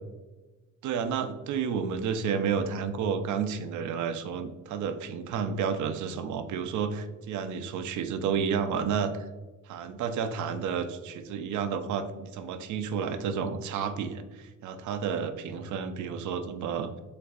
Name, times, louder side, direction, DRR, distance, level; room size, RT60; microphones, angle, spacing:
voice 1, 0.8-9.1 9.7-16.9, right 6 dB, 75° right, 9 dB, 0.5 m, -31 dB
6.5 x 2.6 x 2.4 m, 1.2 s
cardioid pair, 90°, 30 cm